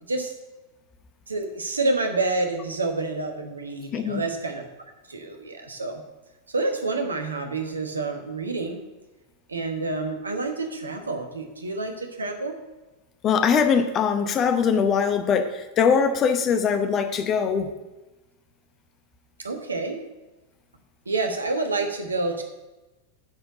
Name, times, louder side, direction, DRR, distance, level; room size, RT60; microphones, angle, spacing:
voice 1, 1.3-4.6 5.1-6.0 6.5-8.8 9.5-12.5 19.4-20.0 21.1-22.4, right 3 dB, 75° right, 5 dB, 1.2 m, -28 dB
voice 2, 3.9-4.2 13.2-17.7, left 6 dB, 30° left, 9 dB, 0.8 m, -22 dB
9.6 x 4.5 x 6.7 m, 1.1 s
figure-of-eight pair, 90°, 0 cm